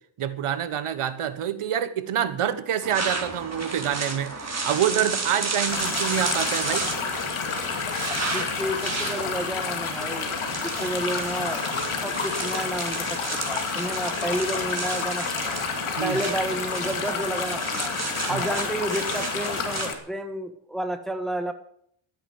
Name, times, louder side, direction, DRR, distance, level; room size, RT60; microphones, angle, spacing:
voice 1, 0.2-6.9 16.0-16.2 18.3-18.4, right 9 dB, 85° right, 11 dB, 1.4 m, -27 dB
sound 1, 2.8-19.9, right 3 dB, 30° right, 3.9 m, -33 dB
sound 2, 5.7-19.9, left 5 dB, 75° left, 2.6 m, -30 dB
voice 2, 8.3-10.4 10.6-11.6 12.0-15.6 16.0-17.9 18.3-21.5, right 1 dB, ahead, 6 dB, 1.5 m, -31 dB
13.5 x 10.5 x 8.0 m, 0.67 s
cardioid pair, 85°, 50 cm